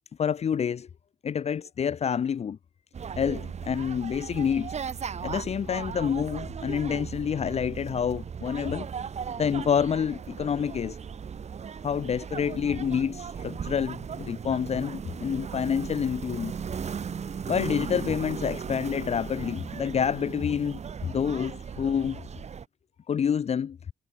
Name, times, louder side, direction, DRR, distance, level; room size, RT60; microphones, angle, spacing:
voice 1, 0.2-0.9 1.2-2.6 3.2-4.7 5.2-8.9 9.4-11.0 11.8-16.5 17.5-22.2 23.1-23.8, left 7 dB, 45° left, 0.8 m, -28 dB
sound 1, 2.9-22.6, right 6 dB, 45° right, 2.8 m, -37 dB
cardioid pair, 125°, 16 cm